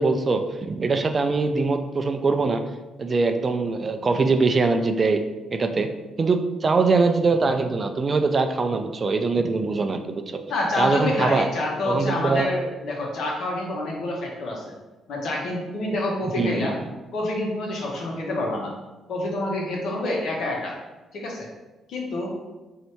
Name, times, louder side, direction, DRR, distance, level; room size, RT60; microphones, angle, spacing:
voice 1, 0.0-2.6 3.0-5.2 5.5-5.9 6.2-10.4 10.8-11.5 11.8-12.5 16.3-16.7, right 3 dB, 35° right, 7 dB, 0.3 m, -22 dB
voice 2, 10.5-14.7 15.1-16.7 17.1-18.7 19.1-20.7 21.1-21.5 21.9-22.4, left 2 dB, 75° left, -2 dB, 1.0 m, -27 dB
3.2 x 2.7 x 4.4 m, 1.1 s
cardioid pair, 90°, 0 cm